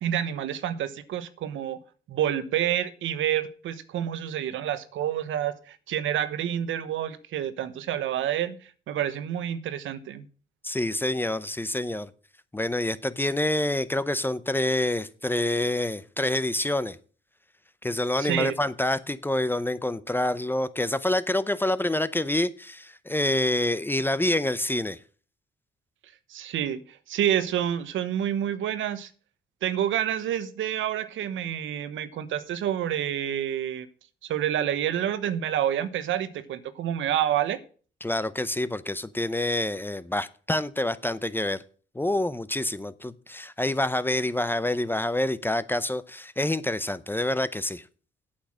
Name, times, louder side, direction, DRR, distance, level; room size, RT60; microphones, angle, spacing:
voice 1, 0.0-1.8 2.1-10.3 18.2-18.5 26.3-29.1 29.6-33.9 34.2-37.6, right 10 dB, 80° right, 1.1 m, -28 dB
voice 2, 10.6-12.1 12.5-17.0 17.8-25.0 38.0-41.6 41.9-47.8, left 1 dB, 10° left, 0.7 m, -27 dB
8.6 x 8.0 x 6.3 m
cardioid pair, 90°, 20 cm